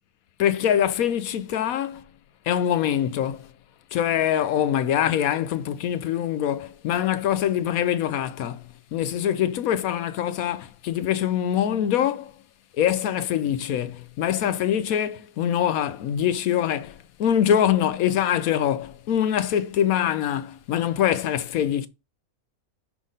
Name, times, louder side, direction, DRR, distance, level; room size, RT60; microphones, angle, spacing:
voice 1, 0.4-2.0 2.5-3.5 3.9-12.3 12.8-21.9, left 10 dB, 70° left, 1.0 m, -24 dB
6.2 x 5.1 x 3.9 m
omnidirectional pair, 1.6 m